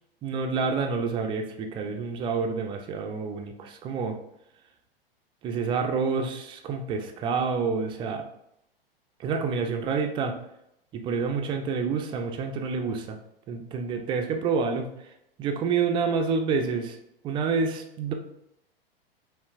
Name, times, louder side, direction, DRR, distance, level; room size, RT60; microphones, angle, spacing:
voice 1, 0.2-4.2 5.4-8.2 9.2-10.4 10.9-13.2 13.5-14.9 15.4-17.0 17.2-18.1, right 5 dB, 20° right, 4 dB, 0.3 m, -28 dB
5.3 x 2.4 x 2.4 m, 0.80 s
figure-of-eight pair, 95°, 29 cm